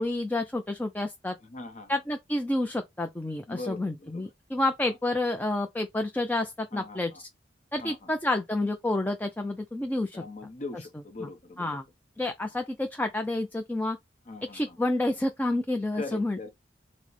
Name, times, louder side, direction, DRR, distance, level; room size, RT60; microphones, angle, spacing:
voice 1, 0.0-1.4 1.9-7.3 7.7-10.2 11.2-11.3 11.6-11.8 12.2-14.0 14.5-16.5, left 2 dB, 10° left, 0.4 m, -29 dB
voice 2, 1.4-2.0 3.5-4.3 4.8-5.0 6.7-7.2 7.8-8.1 10.1-11.8 14.3-14.8 15.9-16.5, left 3 dB, 40° left, 0.7 m, -40 dB
4.3 x 2.1 x 4.0 m
head